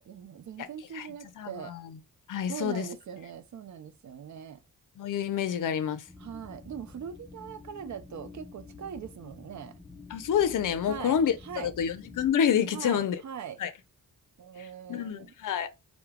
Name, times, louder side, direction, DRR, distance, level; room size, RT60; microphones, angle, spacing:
voice 1, 0.0-1.7 2.5-4.6 6.2-9.7 10.8-11.7 12.7-13.6 14.4-15.3, right 8 dB, 55° right, 0.5 m, -41 dB
voice 2, 1.4-1.8 2.3-2.9 5.0-6.0 10.1-13.2 13.6-13.7 14.9-15.7, left 8 dB, 65° left, 0.5 m, -28 dB
sound 1, 6.1-12.3, left 3 dB, 10° left, 0.4 m, -49 dB
2.3 x 2.1 x 3.3 m
cardioid pair, 70°, 35 cm